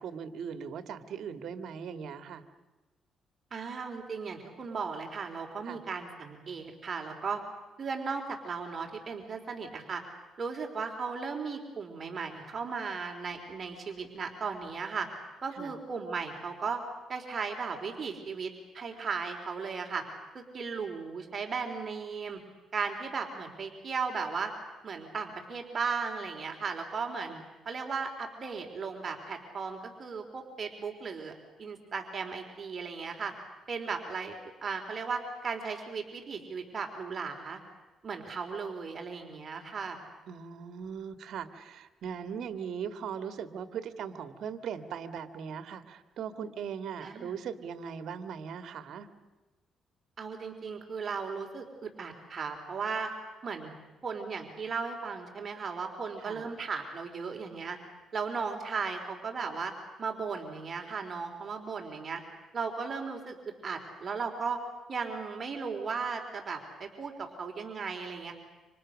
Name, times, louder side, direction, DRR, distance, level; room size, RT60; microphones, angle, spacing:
voice 1, 0.0-2.4 5.7-5.8 15.5-15.8 27.3-27.4 40.3-49.1 56.2-56.5, right 7 dB, 70° right, 9 dB, 2.1 m, -39 dB
voice 2, 3.5-7.4 7.8-10.0 10.4-15.1 15.4-16.8 17.1-20.0 20.3-22.4 22.7-24.5 24.8-27.4 27.7-31.3 31.6-33.3 33.7-37.6 38.0-40.0 47.0-47.4 50.2-53.1 53.4-53.7 54.0-57.8 58.1-59.7 60.0-62.2 62.5-63.3 63.6-64.6 64.9-68.3, right 5 dB, 40° right, 3 dB, 3.8 m, -36 dB
29.5 x 26.5 x 6.5 m, 1.2 s
cardioid pair, 90°, 0 cm